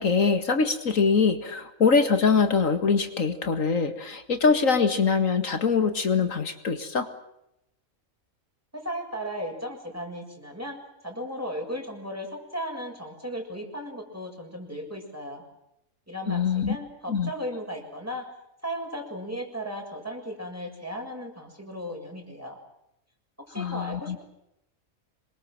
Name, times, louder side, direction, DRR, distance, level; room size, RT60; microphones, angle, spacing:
voice 1, 0.0-7.1 16.3-16.8 17.1-17.3 23.6-24.2, left 5 dB, 75° left, 8 dB, 2.3 m, -23 dB
voice 2, 8.7-10.8 11.0-15.4 16.1-18.3 18.6-22.6 23.4-24.2, equal, 10° right, 2 dB, 6.8 m, -36 dB
27.0 x 23.0 x 7.7 m, 0.82 s
omnidirectional pair, 1.4 m